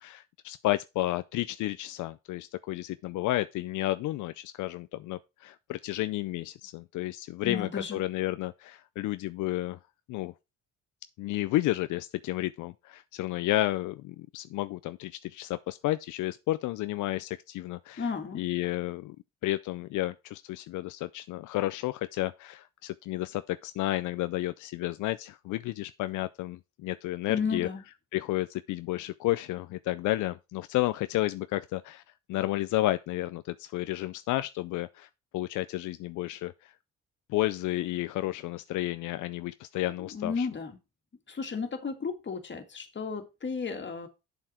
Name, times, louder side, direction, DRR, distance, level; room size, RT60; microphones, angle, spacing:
voice 1, 0.0-9.8 10.1-10.3 11.2-18.1 18.3-19.2 19.4-27.7 28.1-32.0 32.3-35.1 35.3-36.7 37.3-40.5, left 16 dB, 85° left, 0.5 m, -31 dB
voice 2, 7.4-8.0 18.0-18.4 27.3-27.8 40.0-40.7 41.3-44.1, left 5 dB, 40° left, 2.1 m, -33 dB
7.6 x 7.0 x 4.3 m
cardioid pair, 90°, 30 cm